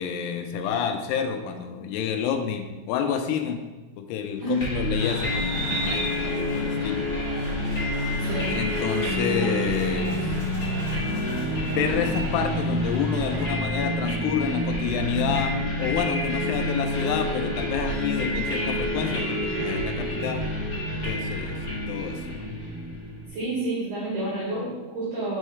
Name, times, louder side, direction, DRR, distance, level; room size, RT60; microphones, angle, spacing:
voice 1, 0.0-3.6 4.0-7.0 8.5-10.3 11.7-20.4 21.0-22.6, left 7 dB, 85° left, 6 dB, 2.6 m, -29 dB
Land of the Free, 4.6-23.3, left 1 dB, 35° left, 1.4 m, -28 dB
sound 1, 5.0-13.5, right 2 dB, 75° right, 1.3 m, -37 dB
voice 2, 23.3-25.4, right 1 dB, 60° right, -7 dB, 2.5 m, -29 dB
5.5 x 5.4 x 3.2 m, 1.2 s
omnidirectional pair, 4.9 m